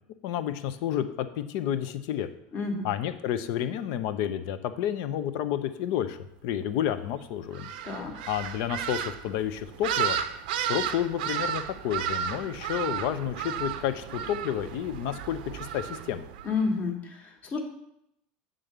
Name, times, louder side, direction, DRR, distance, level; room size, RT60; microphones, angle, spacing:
voice 1, 0.2-2.3 2.8-7.7 8.3-10.2 10.6-16.3, left 10 dB, 60° left, 11 dB, 0.7 m, -30 dB
voice 2, 2.5-2.9 7.8-8.2 16.4-17.6, left 4 dB, 30° left, 3 dB, 1.4 m, -30 dB
sound 1, 7.5-16.6, right 9 dB, 80° right, 0.5 m, -33 dB
7.6 x 3.8 x 6.7 m, 0.79 s
supercardioid pair, 145°, 5 cm